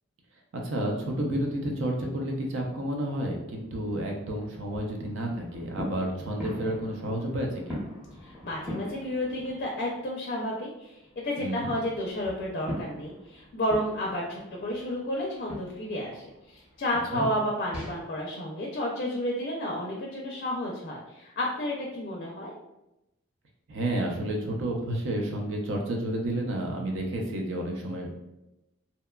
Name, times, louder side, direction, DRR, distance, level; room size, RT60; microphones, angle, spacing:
voice 1, 0.6-7.8 11.4-11.7 17.1-17.3 23.7-28.1, right 1 dB, 65° right, 1 dB, 0.5 m, -30 dB
sound 1, 3.4-10.1 10.5-17.9, equal, 5° right, 0.8 m, -43 dB
voice 2, 8.2-11.0 11.2-22.5, left 1 dB, 45° left, -1 dB, 0.4 m, -31 dB
2.8 x 2.2 x 2.2 m, 0.93 s
head